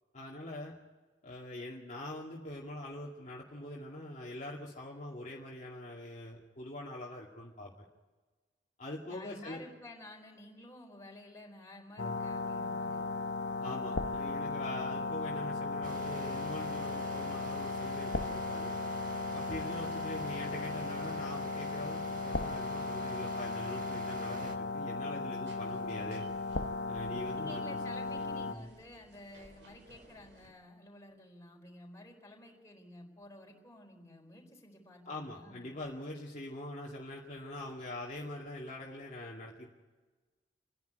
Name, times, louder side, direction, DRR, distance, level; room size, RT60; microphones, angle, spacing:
voice 1, 0.1-0.7 1.2-7.9 8.8-9.6 13.6-18.7 19.3-26.3 26.9-27.8 35.1-39.7, left 1 dB, 45° left, -3 dB, 2.3 m, -43 dB
voice 2, 9.1-13.1 27.3-35.6, left 1 dB, 20° left, 0 dB, 4.4 m, -52 dB
sound 1, 12.0-28.5, left 3 dB, 75° left, 1.1 m, -36 dB
sound 2, 15.8-24.6, right 2 dB, 50° right, 1.8 m, -47 dB
sound 3, 25.4-30.5, right 1 dB, 90° right, 4.5 m, -59 dB
28.0 x 11.0 x 9.5 m, 1.3 s
head